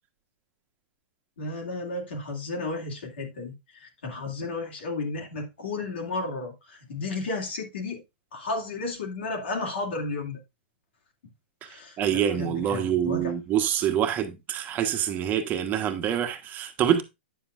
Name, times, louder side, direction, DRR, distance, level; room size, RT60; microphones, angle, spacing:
voice 1, 1.4-8.0 8.3-10.4 11.6-13.3, left 3 dB, 75° left, 2.4 m, -33 dB
voice 2, 12.0-17.0, right 9 dB, 30° right, 1.3 m, -26 dB
9.2 x 7.2 x 2.5 m
hypercardioid pair, 125°, 6 cm